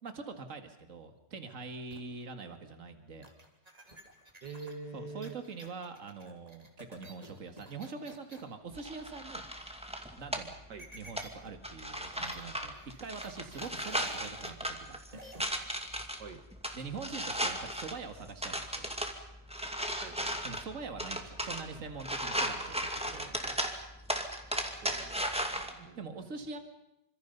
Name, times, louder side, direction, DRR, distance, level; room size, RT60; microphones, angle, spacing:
voice 1, 0.0-3.3 4.9-9.5 10.2-10.5 10.9-15.2 16.7-18.9 20.4-23.6 25.9-26.6, right 4 dB, 45° right, 7 dB, 2.4 m, -44 dB
sound 1, 1.9-2.2 3.2-8.5 10.8-11.5 11.8-11.9 12.1-12.5 12.7-14.5 15.1-15.4, right 1 dB, 20° right, 3.1 m, -52 dB
voice 2, 4.4-5.4 10.7-10.9 16.2-16.4 20.0-20.5 24.8-26.3, right 4 dB, 75° right, 7 dB, 2.3 m, -46 dB
sound 2, 8.7-25.7, equal, 5° right, 2.2 m, -37 dB
28.0 x 26.0 x 5.5 m, 0.86 s
omnidirectional pair, 1.9 m